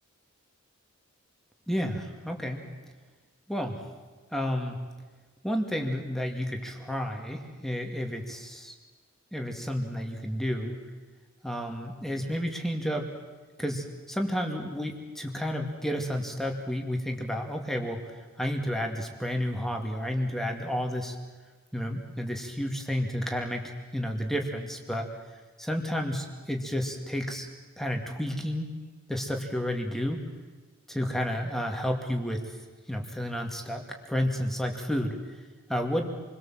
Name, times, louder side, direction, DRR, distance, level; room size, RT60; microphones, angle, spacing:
voice 1, 1.7-2.6 3.5-3.8 4.3-4.8 5.4-8.7 9.3-10.8 11.4-13.1 13.6-21.2 21.7-23.6 23.9-25.1 25.6-27.5 27.8-28.7 29.1-30.2 30.9-32.4 32.9-33.8 34.1-35.2 35.7-36.1, equal, ahead, 2 dB, 2.4 m, -31 dB
28.0 x 22.5 x 7.6 m, 1.4 s
head